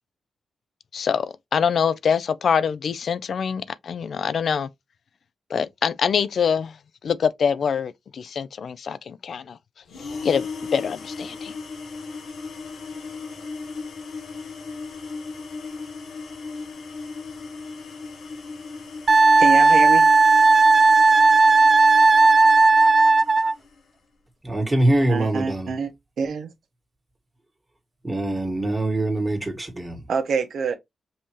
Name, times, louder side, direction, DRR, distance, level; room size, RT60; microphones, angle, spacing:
voice 1, 0.9-4.7 5.5-6.8 7.0-9.6 10.2-10.5 10.7-11.5, left 7 dB, 65° left, 0.3 m, -24 dB
sound 1, 9.9-23.8, left 4 dB, 85° left, 1.4 m, -37 dB
Wind instrument woodwind instrument, 19.1-23.5, right 3 dB, 30° right, 0.4 m, -15 dB
voice 2, 19.4-20.1 25.1-25.9 26.2-26.5 30.1-30.8, right 5 dB, 70° right, 1.0 m, -25 dB
voice 3, 24.4-25.7 28.0-30.0, right 1 dB, 15° right, 1.7 m, -23 dB
5.4 x 2.7 x 3.1 m
cardioid pair, 100°, 0 cm